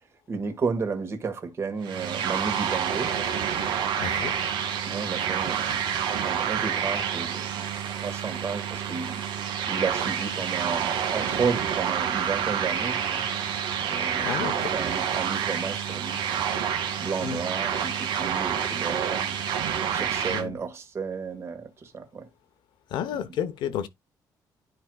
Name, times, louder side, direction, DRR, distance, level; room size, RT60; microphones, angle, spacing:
voice 1, 0.3-3.1 4.9-5.7 6.2-7.7 7.9-9.2 9.7-13.2 13.8-16.4 17.0-19.4 19.9-22.3, right 5 dB, 35° right, 1.5 m, -32 dB
sound 1, 1.8-20.4, right 8 dB, 85° right, 1.6 m, -28 dB
voice 2, 4.0-4.3 14.2-14.7 17.2-17.4 20.3-20.5 22.9-23.9, left 9 dB, 80° left, 0.9 m, -31 dB
12.0 x 4.7 x 2.3 m
cardioid pair, 140°, 8 cm